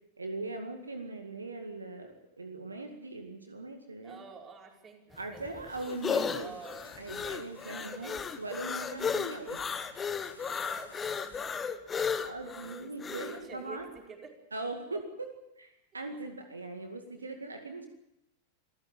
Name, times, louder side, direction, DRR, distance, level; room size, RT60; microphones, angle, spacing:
voice 1, 0.2-4.2 5.2-6.5 7.0-9.6 12.2-13.9 14.5-15.0 15.6-17.9, right 2 dB, 80° right, 6 dB, 2.1 m, -40 dB
voice 2, 4.0-5.4 6.3-6.8 7.9-8.2 10.4-14.3 17.2-17.3, right 5 dB, 25° right, 2 dB, 4.9 m, -49 dB
sound 1, 5.1-13.4, left 6 dB, 20° left, 1.5 m, -34 dB
sound 2, 5.7-11.4, left 2 dB, 80° left, 5.8 m, -56 dB
27.0 x 14.5 x 9.2 m, 0.85 s
figure-of-eight pair, 90°, 0 cm